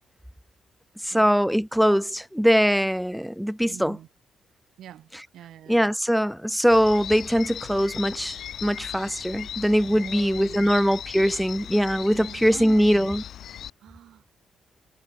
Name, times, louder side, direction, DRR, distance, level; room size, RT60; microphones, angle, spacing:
voice 1, 1.0-4.0 5.7-13.2, equal, ahead, 0.4 m, -22 dB
voice 2, 3.7-4.1 4.8-5.9 9.8-10.7 12.1-13.1 13.8-14.2, right 11 dB, 75° right, 3.0 m, -44 dB
sound 1, 6.7-13.7, left 10 dB, 70° left, 3.3 m, -38 dB
cardioid pair, 90°, 0 cm